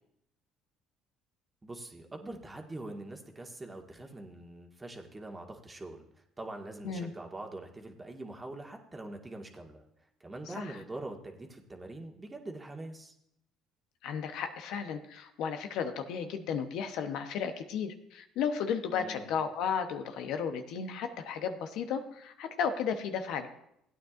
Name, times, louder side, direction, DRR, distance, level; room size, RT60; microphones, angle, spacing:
voice 1, 1.6-6.1 6.4-9.8 10.2-13.1 18.9-19.2, right 2 dB, 20° right, 2 dB, 1.7 m, -43 dB
voice 2, 14.0-23.5, left 7 dB, 70° left, 7 dB, 0.9 m, -34 dB
16.5 x 9.2 x 2.5 m, 0.76 s
supercardioid pair, 75°, 0 cm